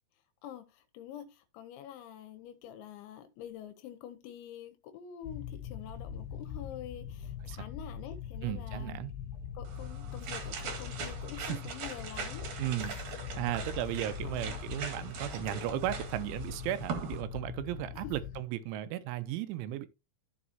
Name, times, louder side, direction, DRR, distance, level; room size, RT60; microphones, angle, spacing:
voice 1, 0.4-9.0 9.5-12.5 14.2-14.6 18.0-18.1, left 10 dB, 85° left, 3.2 m, -46 dB
sound 1, 5.2-18.4, left 7 dB, 65° left, 2.9 m, -42 dB
voice 2, 8.4-9.1 11.6-11.7 12.6-13.0 13.4-19.9, right 13 dB, 90° right, 3.2 m, -35 dB
sound 2, 9.6-17.2, right 5 dB, 55° right, 2.4 m, -41 dB
14.5 x 5.0 x 2.8 m
omnidirectional pair, 5.5 m